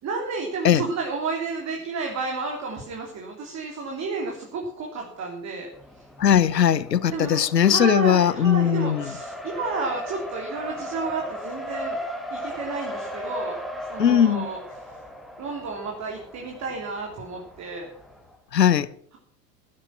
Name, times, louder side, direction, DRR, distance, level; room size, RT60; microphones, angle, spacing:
voice 1, 0.0-5.7 6.0-6.1 7.1-12.0 12.3-13.6 13.9-14.9 15.4-17.9, right 4 dB, 35° right, 3.4 m, -31 dB
Race car auto racing, 5.7-18.4, equal, ahead, 2.8 m, -37 dB
voice 2, 6.2-9.1 14.0-14.5 18.5-18.9, left 9 dB, 80° left, 0.9 m, -19 dB
15.5 x 11.0 x 5.9 m
figure-of-eight pair, 75°, 49 cm